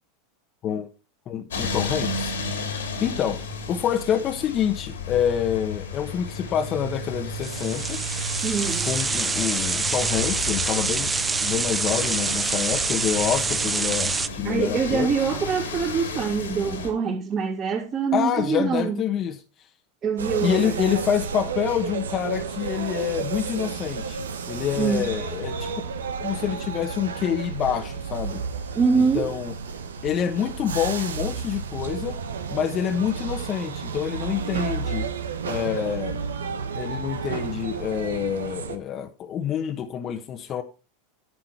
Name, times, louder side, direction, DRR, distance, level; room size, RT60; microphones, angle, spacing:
voice 1, 1.3-2.3 3.0-3.4 3.7-8.0 8.8-11.1 11.4-15.1 18.1-19.4 20.4-25.7 26.2-28.4 29.1-29.5 30.0-32.2 32.5-35.1 35.4-36.2 36.7-40.6, left 9 dB, 40° left, 1.2 m, -27 dB
sound 1, 1.5-16.9, left 3 dB, 85° left, 2.9 m, -32 dB
sound 2, 7.4-14.3, right 4 dB, 20° right, 0.6 m, -26 dB
voice 2, 8.4-8.9 14.4-19.0 20.0-20.7 24.8-25.1 28.7-29.3, right 5 dB, 35° right, 3.1 m, -24 dB
sound 3, 20.2-38.8, right 5 dB, 85° right, 1.2 m, -31 dB
11.0 x 7.6 x 4.7 m
hypercardioid pair, 95°, 0 cm